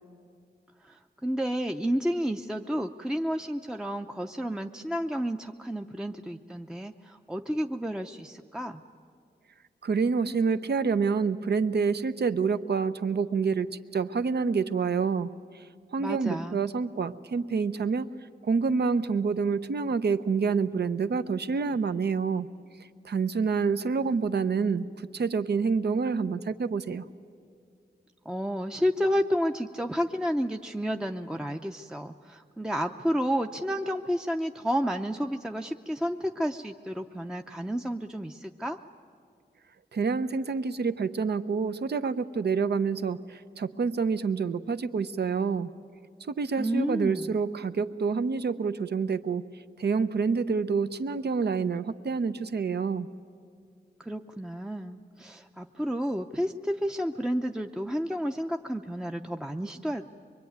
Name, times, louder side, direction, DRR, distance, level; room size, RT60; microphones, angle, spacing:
voice 1, 0.8-8.8 16.0-16.6 28.3-38.8 46.6-47.4 54.0-60.1, equal, 5° right, 4 dB, 0.6 m, -31 dB
voice 2, 9.8-15.3 15.5-15.6 15.9-18.1 18.4-22.5 23.0-27.0 39.9-45.7 46.3-49.5 49.8-53.1, right 5 dB, 70° right, 11 dB, 0.8 m, -27 dB
24.0 x 23.5 x 9.4 m, 2.2 s
wide cardioid pair, 120°, 18 cm